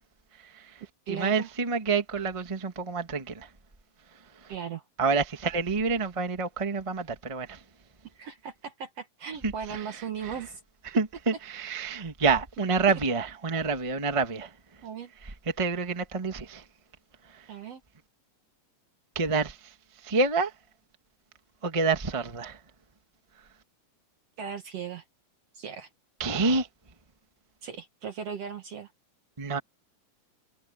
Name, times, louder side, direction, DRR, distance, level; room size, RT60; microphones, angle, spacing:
voice 1, 0.3-3.5 4.1-4.5 5.0-7.6 9.4-10.4 10.8-14.8 15.2-16.7 17.2-17.5 19.1-20.5 21.6-22.6 23.4-23.5 26.2-26.7 29.4-29.6, right 4 dB, 15° right, 1.1 m, -28 dB
voice 2, 1.1-1.5 4.5-4.8 8.2-10.6 12.9-13.0 14.8-15.1 17.5-17.8 24.4-25.0 25.5-25.9 27.6-28.9, right 7 dB, 60° right, 2.0 m, -37 dB
omnidirectional pair, 4.0 m